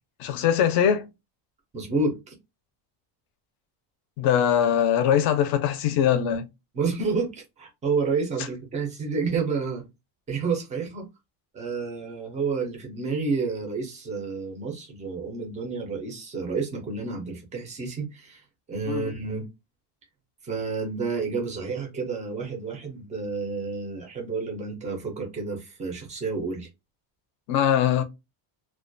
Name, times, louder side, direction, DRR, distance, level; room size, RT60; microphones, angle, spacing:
voice 1, 0.2-1.1 4.2-6.5 18.9-19.0 27.5-28.0, left 9 dB, 50° left, 0.4 m, -22 dB
voice 2, 1.7-2.3 6.7-9.8 10.3-11.1 11.5-19.5 20.4-26.7, right 4 dB, 15° right, 0.3 m, -30 dB
2.3 x 2.1 x 2.5 m
cardioid pair, 175°, 50 cm